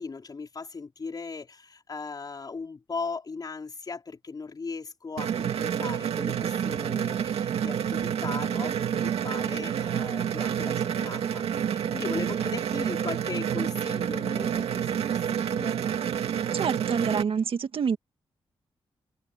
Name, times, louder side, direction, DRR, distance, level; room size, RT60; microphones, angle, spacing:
voice 1, 0.0-11.4 11.7-15.8, left 4 dB, 40° left, 4.6 m, -38 dB
sound 1, 5.2-17.2, right 9 dB, 90° right, 2.4 m, -28 dB
voice 2, 16.5-18.0, right 6 dB, 65° right, 1.9 m, -27 dB
cardioid pair, 85°, 10 cm